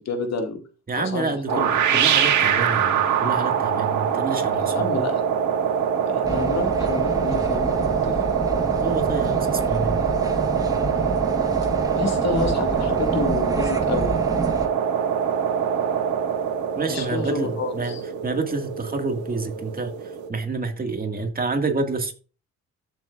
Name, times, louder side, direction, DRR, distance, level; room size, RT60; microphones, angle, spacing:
voice 1, 0.1-0.6 1.0-1.7 4.7-5.2 6.1-8.2 12.0-14.2 16.9-18.0, left 4 dB, 60° left, 4 dB, 2.1 m, -29 dB
voice 2, 0.9-5.0 8.8-10.0 16.8-18.0 18.2-22.1, right 3 dB, 30° right, 4 dB, 2.0 m, -28 dB
sound 1, 1.5-20.3, right 8 dB, 75° right, 1.7 m, -24 dB
sound 2, 6.2-14.7, right 1 dB, 10° right, 1.5 m, -29 dB
14.0 x 7.0 x 2.5 m, 0.35 s
cardioid pair, 90°, 30 cm